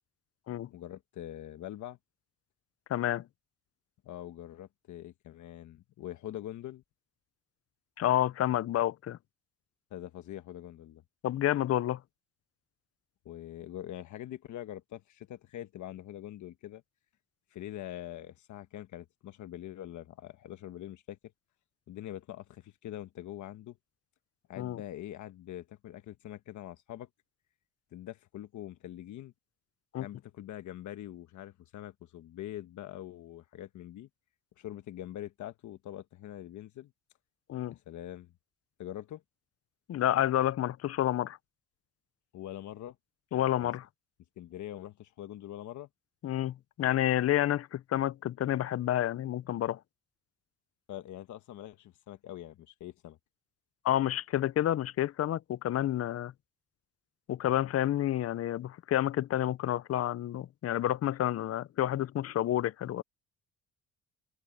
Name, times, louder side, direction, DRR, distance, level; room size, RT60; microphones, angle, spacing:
voice 1, 0.7-2.0 4.0-6.8 9.9-11.0 13.2-16.8 17.5-21.2 21.9-23.8 24.5-27.1 27.9-29.3 30.0-34.1 34.6-36.9 37.7-38.3 38.8-39.2 42.3-43.0 43.6-43.7 44.4-45.9 50.9-53.2, left 12 dB, 75° left, 1.2 m, -44 dB
voice 2, 2.9-3.2 8.0-9.2 11.2-12.0 24.6-24.8 29.9-30.1 37.5-37.7 39.9-41.4 43.3-43.9 46.2-49.8 53.8-56.3 57.3-63.0, left 12 dB, 55° left, 0.6 m, -29 dB
cardioid pair, 90°, 30 cm